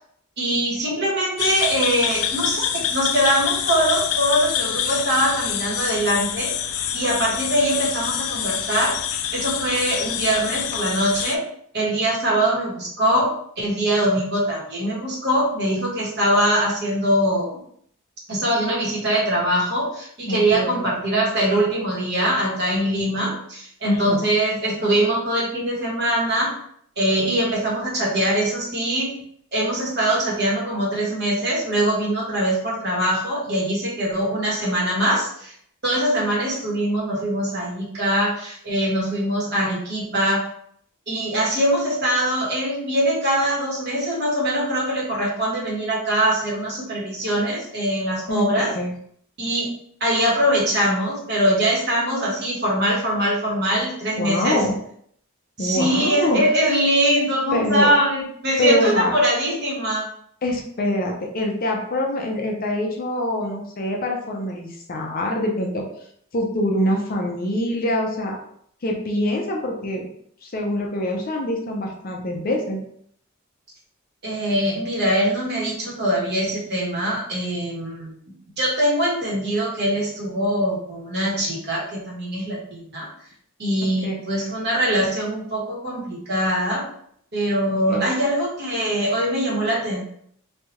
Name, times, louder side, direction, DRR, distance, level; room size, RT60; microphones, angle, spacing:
voice 1, 0.4-6.5 6.9-8.9 9.3-11.4 11.7-13.3 13.6-17.6 18.3-26.5 27.0-29.1 29.5-35.5 35.8-40.5 41.1-48.7 49.4-49.7 50.0-54.6 55.6-60.0 74.2-83.1 83.6-86.8 87.3-90.0, right 1 dB, 50° right, -4 dB, 1.1 m, -22 dB
sound 1, 1.4-11.4, left 9 dB, 90° left, 0.3 m, -26 dB
voice 2, 20.3-20.8 23.8-24.2 48.3-48.9 54.1-54.7 55.6-56.4 57.5-57.9 58.6-59.1 60.4-65.8 66.3-68.4 68.8-70.1 70.4-72.8 84.0-84.2 87.7-88.1, left 1 dB, 45° left, 1 dB, 0.6 m, -24 dB
3.2 x 2.3 x 2.9 m, 0.65 s
head